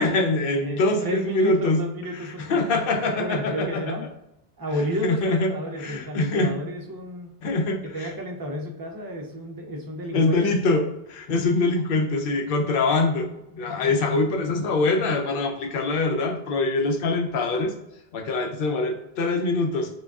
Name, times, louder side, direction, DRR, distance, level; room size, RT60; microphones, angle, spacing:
voice 1, 0.0-1.8 2.1-3.9 5.0-6.5 7.4-8.1 10.1-17.7 18.1-19.9, left 3 dB, 65° left, 4 dB, 0.7 m, -24 dB
voice 2, 0.6-2.6 3.2-4.1 4.6-7.3 7.9-10.4, equal, 35° right, 1 dB, 0.3 m, -31 dB
4.7 x 2.3 x 2.3 m, 0.85 s
omnidirectional pair, 1.0 m